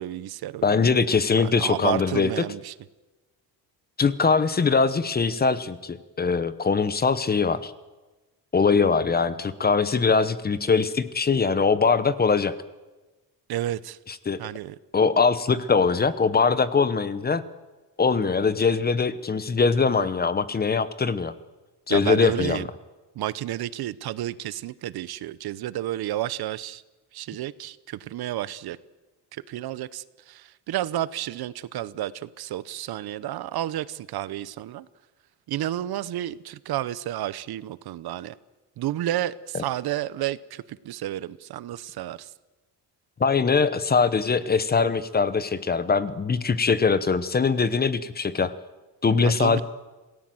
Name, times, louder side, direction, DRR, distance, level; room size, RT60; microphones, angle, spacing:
voice 1, 0.0-1.0 1.4-2.7 13.5-14.0 14.4-14.7 21.9-22.7 23.1-26.8 27.1-28.8 29.3-34.9 35.5-38.3 38.8-42.3 49.2-49.6, right 13 dB, 60° right, 18 dB, 0.9 m, -31 dB
voice 2, 0.6-2.3 4.0-7.7 8.5-12.6 14.1-14.4 14.9-17.4 18.0-21.3 21.9-22.6 43.2-48.5 49.0-49.6, left 5 dB, 20° left, 15 dB, 0.9 m, -22 dB
27.0 x 18.0 x 7.8 m, 1.2 s
cardioid pair, 160°, 42 cm